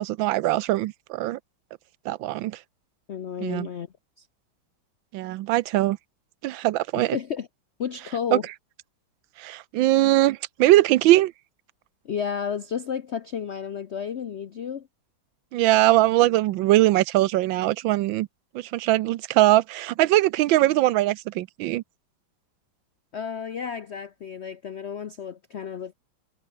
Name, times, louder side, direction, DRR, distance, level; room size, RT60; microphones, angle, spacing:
voice 1, 0.0-1.4 2.0-2.6 3.4-3.7 5.1-6.0 6.4-7.2 8.3-8.4 9.4-11.3 15.5-18.3 18.5-21.8, right 15 dB, 75° right, 1.3 m, -21 dB
voice 2, 3.1-3.9 4.2-4.3 7.0-7.5 7.8-8.5 12.0-14.9 23.1-25.9, left 7 dB, 85° left, 0.5 m, -32 dB
omnidirectional pair, 2.2 m